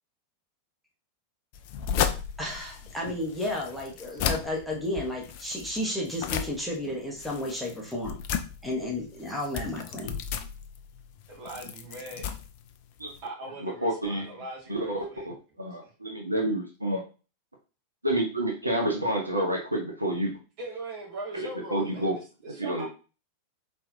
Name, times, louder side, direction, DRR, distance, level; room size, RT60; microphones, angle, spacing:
sound 1, 1.5-13.3, left 8 dB, 45° left, 0.4 m, -35 dB
voice 1, 2.4-8.2 8.6-10.2, left 1 dB, ahead, 1.2 m, -32 dB
voice 2, 11.3-12.3 13.2-15.3 20.6-22.2 22.5-22.9, right 2 dB, 45° right, 1.9 m, -40 dB
voice 3, 13.6-14.3 14.7-17.0 18.0-20.3 21.3-22.2 22.5-22.9, right 1 dB, 80° right, 0.8 m, -29 dB
4.4 x 3.4 x 2.7 m
figure-of-eight pair, 90°, 0 cm